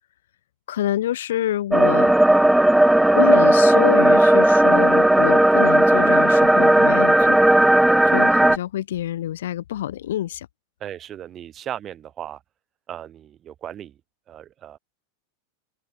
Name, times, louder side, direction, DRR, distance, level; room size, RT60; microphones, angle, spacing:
voice 1, 0.7-2.1 3.1-7.4 8.1-10.5, left 12 dB, 80° left, 5.9 m, -26 dB
sound 1, 1.7-8.6, right 1 dB, 5° right, 0.6 m, -15 dB
voice 2, 10.8-12.4 12.9-14.0 14.3-14.8, right 10 dB, 35° right, 6.1 m, -36 dB
open air
hypercardioid pair, 115°, 0 cm